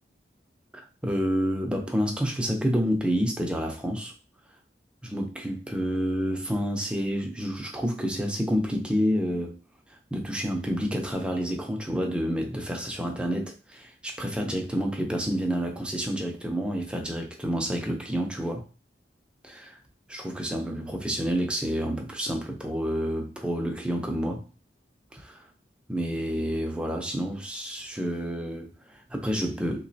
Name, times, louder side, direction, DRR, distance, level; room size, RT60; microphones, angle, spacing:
voice 1, 0.7-4.1 5.0-9.6 9.9-18.6 19.4-19.8 20.1-24.5 25.1-25.5 25.9-29.9, equal, 5° right, 0.5 m, -29 dB
3.5 x 3.0 x 2.7 m
head